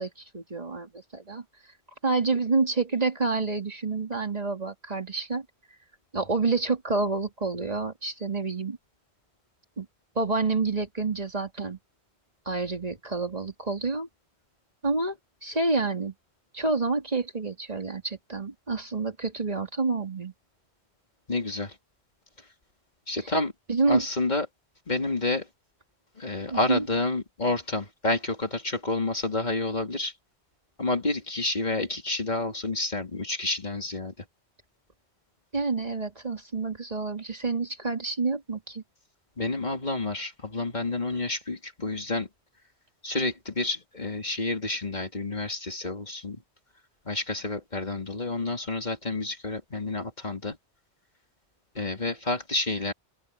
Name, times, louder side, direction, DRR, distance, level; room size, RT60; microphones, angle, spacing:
voice 1, 0.0-1.4 2.0-5.4 6.1-8.8 9.8-9.9 10.2-11.8 12.5-14.1 14.8-15.2 15.4-16.1 16.5-20.3 23.2-23.3 23.7-24.1 26.5-26.9 35.5-38.8, right 3 dB, 35° right, 2.6 m, -28 dB
voice 2, 21.3-21.7 23.1-23.5 23.9-24.5 24.9-25.4 26.2-30.1 30.8-34.1 39.4-42.3 43.0-46.4 47.1-50.6 51.7-52.9, left 2 dB, 40° left, 2.7 m, -29 dB
open air
omnidirectional pair, 1.2 m